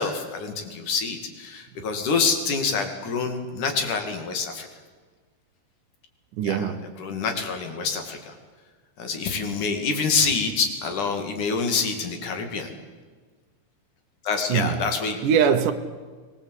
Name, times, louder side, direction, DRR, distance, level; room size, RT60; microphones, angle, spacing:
voice 1, 0.0-4.7 6.4-6.6 7.0-8.4 9.0-12.7 14.2-15.2, left 5 dB, 70° left, 5 dB, 3.9 m, -26 dB
voice 2, 6.3-7.0 14.5-14.9 15.2-15.7, right 7 dB, 75° right, 8 dB, 2.6 m, -22 dB
24.0 x 20.0 x 8.3 m, 1.5 s
omnidirectional pair, 3.8 m